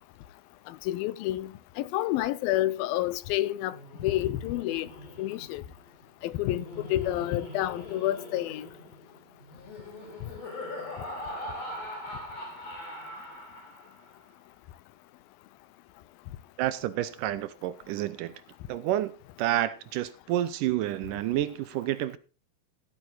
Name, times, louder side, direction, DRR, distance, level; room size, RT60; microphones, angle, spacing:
voice 1, 0.7-3.7 4.0-4.9 5.2-5.6 6.2-8.7, left 15 dB, 85° left, 2.5 m, -29 dB
Laughter, 3.7-14.1, left 1 dB, 45° left, 6.0 m, -42 dB
voice 2, 16.6-18.3 18.7-19.1 19.4-22.2, right 13 dB, 75° right, 2.1 m, -29 dB
14.5 x 8.8 x 4.0 m
omnidirectional pair, 4.1 m